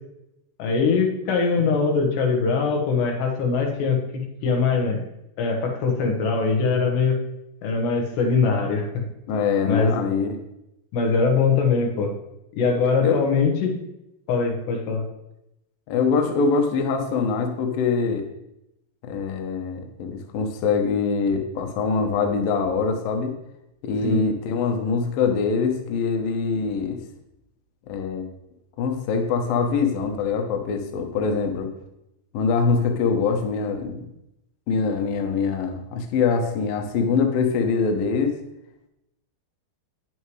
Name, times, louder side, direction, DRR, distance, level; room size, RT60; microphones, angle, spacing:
voice 1, 0.6-5.0 5.4-7.2 7.6-9.0 9.7-9.9 10.9-12.1 12.5-13.8 14.3-15.0 24.0-24.2, left 4 dB, 90° left, 1 dB, 3.5 m, -22 dB
voice 2, 9.3-10.4 13.0-13.2 15.9-18.3 19.0-23.4 23.8-27.0 27.9-28.3 28.8-31.7 32.3-34.0 34.7-38.4, left 5 dB, 70° left, 4 dB, 2.4 m, -23 dB
9.4 x 9.1 x 3.2 m, 0.87 s
omnidirectional pair, 4.7 m